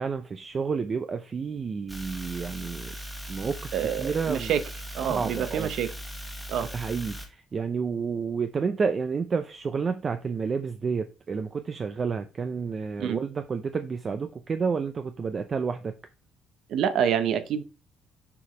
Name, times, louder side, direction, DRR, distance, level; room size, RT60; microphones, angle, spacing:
voice 1, 0.0-2.9 3.3-3.7 4.0-4.5 5.1-5.7 6.7-15.9, right 5 dB, 30° right, 0.5 m, -30 dB
sound 1, 1.9-7.3, equal, 5° right, 1.5 m, -39 dB
voice 2, 3.7-4.6 4.9-5.9 6.5-6.7 13.0-13.2 16.7-17.6, right 9 dB, 65° right, 1.0 m, -27 dB
7.0 x 5.0 x 4.5 m
cardioid pair, 145°, 0 cm